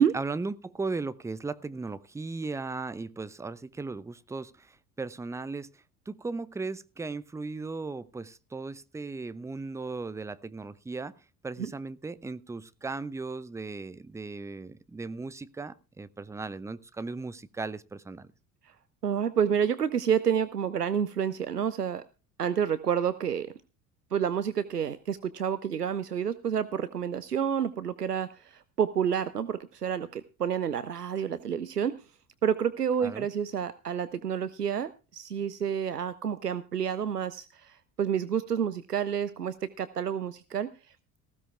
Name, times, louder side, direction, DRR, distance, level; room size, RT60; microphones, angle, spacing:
voice 1, 0.0-11.1 11.4-18.3 33.0-33.3, right 3 dB, 5° right, 16 dB, 0.6 m, -37 dB
voice 2, 19.0-22.0 22.4-23.5 24.1-32.0 32.4-41.2, right 8 dB, 90° right, 15 dB, 0.6 m, -29 dB
19.0 x 15.5 x 2.3 m, 0.31 s
figure-of-eight pair, 60°, 46 cm